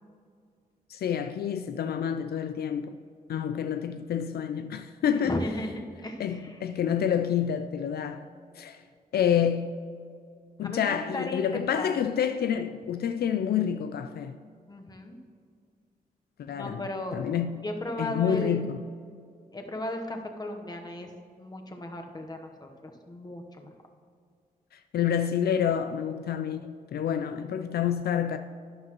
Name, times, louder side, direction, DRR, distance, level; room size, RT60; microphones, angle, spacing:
voice 1, 0.9-3.0 3.3-5.4 6.2-8.3 8.6-8.8 9.1-9.7 10.6-14.4 16.4-16.8 17.1-17.5 18.0-18.8 24.7-28.4, left 8 dB, 80° left, 0.4 m, -28 dB
voice 2, 5.1-6.6 10.6-11.9 14.7-15.2 16.5-17.2 17.6-18.7 19.5-21.1 21.4-23.7, left 1 dB, 25° left, 1.1 m, -35 dB
12.0 x 10.0 x 3.1 m
cardioid pair, 90°, 16 cm